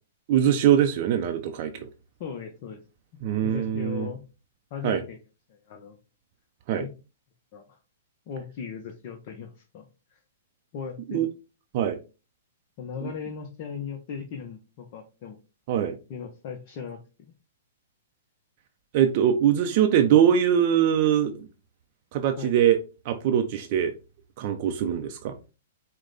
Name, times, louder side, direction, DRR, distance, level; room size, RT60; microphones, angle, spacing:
voice 1, 0.3-1.9 3.2-4.1 4.8-5.0 6.7-6.8 11.1-11.3 11.7-12.0 13.0-13.1 15.7-16.0 18.9-21.5 22.1-22.8 23.1-23.9 24.4-25.3, right 9 dB, 50° right, 6 dB, 0.5 m, -22 dB
voice 2, 2.2-2.8 3.4-4.2 4.7-5.2 5.5-6.0 6.8-6.9 7.5-7.8 8.3-9.9 10.7-11.2 12.8-15.4 16.1-17.3 22.4-22.5, left 6 dB, 45° left, 4 dB, 0.7 m, -37 dB
4.8 x 2.1 x 3.9 m, 0.31 s
hypercardioid pair, 135°, 0 cm